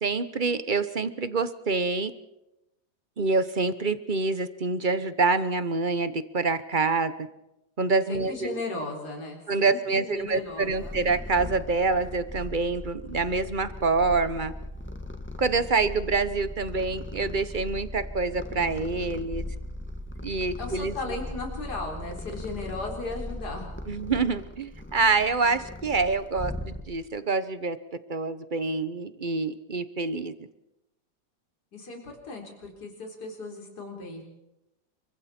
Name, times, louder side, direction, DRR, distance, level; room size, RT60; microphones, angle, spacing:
voice 1, 0.0-2.1 3.2-7.1 7.8-8.6 9.5-14.5 15.4-19.4 20.2-20.9 23.9-27.8 28.1-30.3, right 4 dB, 35° right, 12 dB, 0.9 m, -26 dB
voice 2, 8.1-11.0 20.6-23.7 31.7-34.2, left 2 dB, 60° left, 0 dB, 4.7 m, -36 dB
Purr, 10.3-27.2, left 1 dB, 5° left, 1.3 m, -38 dB
29.5 x 24.5 x 4.4 m, 0.92 s
omnidirectional pair, 2.0 m